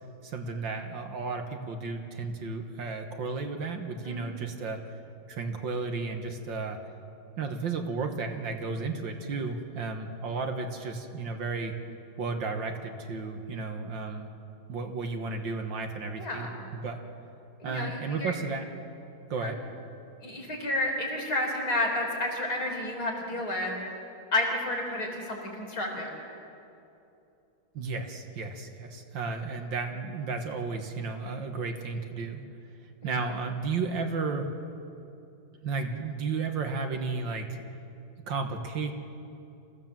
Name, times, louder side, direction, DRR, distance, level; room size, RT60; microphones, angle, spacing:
voice 1, 0.2-4.8 5.3-6.8 7.4-11.7 12.2-14.3 14.7-17.0 17.6-18.7 19.3-19.6 27.7-32.5 33.0-34.5 35.6-37.5 38.3-38.9, right 4 dB, 65° right, 5 dB, 2.0 m, -33 dB
voice 2, 4.0-4.4 16.2-16.5 17.6-18.3 19.4-19.5 20.2-23.7 24.3-26.1, left 1 dB, 45° left, 0 dB, 4.4 m, -31 dB
26.0 x 16.0 x 7.5 m, 2.7 s
omnidirectional pair, 2.3 m